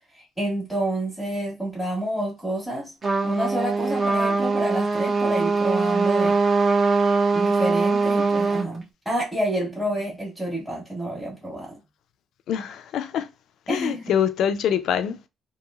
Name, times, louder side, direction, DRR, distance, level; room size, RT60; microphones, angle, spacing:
voice 1, 0.1-2.9 3.2-6.4 7.3-11.8 13.7-14.1, right 1 dB, 5° right, 1.2 m, -28 dB
Trumpet, 3.0-8.7, right 3 dB, 30° right, 0.7 m, -22 dB
voice 2, 12.5-13.3 13.7-15.2, left 9 dB, 65° left, 0.4 m, -24 dB
2.9 x 2.6 x 2.3 m
cardioid pair, 140°, 0 cm